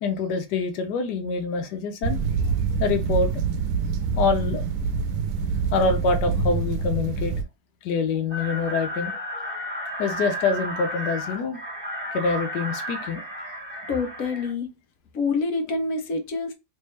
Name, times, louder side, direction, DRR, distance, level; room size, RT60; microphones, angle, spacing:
voice 1, 0.0-2.2 2.8-3.3 4.2-4.6 5.7-7.3 7.8-9.2 10.0-11.6 12.1-13.2, left 4 dB, 90° left, 1.3 m, -25 dB
sound 1, 2.0-7.4, right 5 dB, 90° right, 1.2 m, -25 dB
sound 2, 8.3-14.5, equal, 5° right, 1.4 m, -33 dB
voice 2, 13.9-14.7 15.1-16.5, left 4 dB, 60° left, 1.2 m, -26 dB
3.4 x 3.2 x 3.1 m
omnidirectional pair, 1.7 m